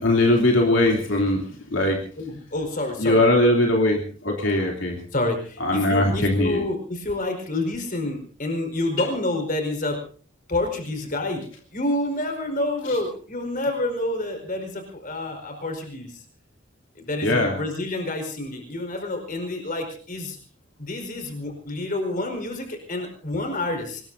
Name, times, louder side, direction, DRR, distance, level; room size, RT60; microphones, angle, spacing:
voice 1, 0.0-1.4 1.7-2.0 3.0-5.0 5.6-6.6 17.2-17.6, left 1 dB, 75° left, 0 dB, 3.1 m, -20 dB
voice 2, 2.2-3.2 5.1-10.0 10.5-11.5 11.7-16.2 17.0-20.4 20.8-24.0, left 2 dB, 45° left, 5 dB, 4.7 m, -28 dB
25.0 x 20.5 x 2.7 m, 0.42 s
head